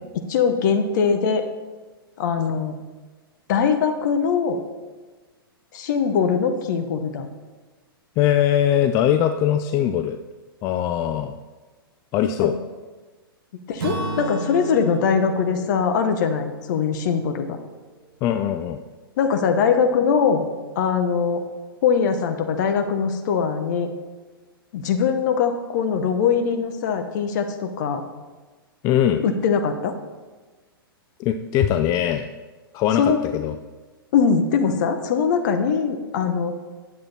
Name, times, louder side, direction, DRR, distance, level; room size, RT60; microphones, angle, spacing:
voice 1, 0.3-1.5 2.2-2.7 3.5-4.6 5.7-7.3 12.4-12.6 13.7-17.6 19.2-20.4 20.7-21.4 21.8-23.9 24.7-28.0 29.2-29.9 33.0-33.3 34.1-36.5, left 6 dB, 50° left, 6 dB, 1.2 m, -21 dB
voice 2, 8.2-10.2 10.6-11.4 12.1-12.6 18.2-18.8 28.8-29.2 31.2-32.3 32.7-33.6, left 10 dB, 30° left, 8 dB, 0.4 m, -21 dB
Acoustic guitar / Strum, 13.8-17.8, right 3 dB, 60° right, 1.7 m, -34 dB
10.5 x 7.5 x 4.3 m, 1.3 s
figure-of-eight pair, 110°, 13 cm